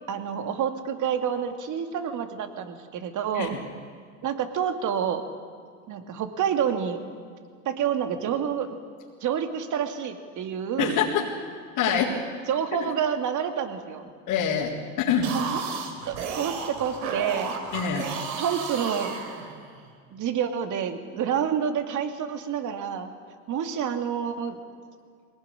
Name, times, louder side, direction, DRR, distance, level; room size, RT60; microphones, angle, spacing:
voice 1, 0.1-3.6 4.2-5.2 5.9-7.0 7.6-8.8 9.2-11.0 11.9-12.2 12.5-14.1 15.2-15.6 16.0-17.5 18.4-19.1 20.1-23.1 23.5-24.6, right 8 dB, 45° right, 7 dB, 2.6 m, -28 dB
voice 2, 10.8-11.2 11.7-12.1 12.8-12.9 14.3-15.3 17.7-18.1, left 7 dB, 55° left, -5 dB, 3.9 m, -25 dB
sound 1, 15.1-19.8, right 5 dB, 75° right, 3.9 m, -33 dB
22.5 x 18.5 x 9.9 m, 2.1 s
hypercardioid pair, 85°, 41 cm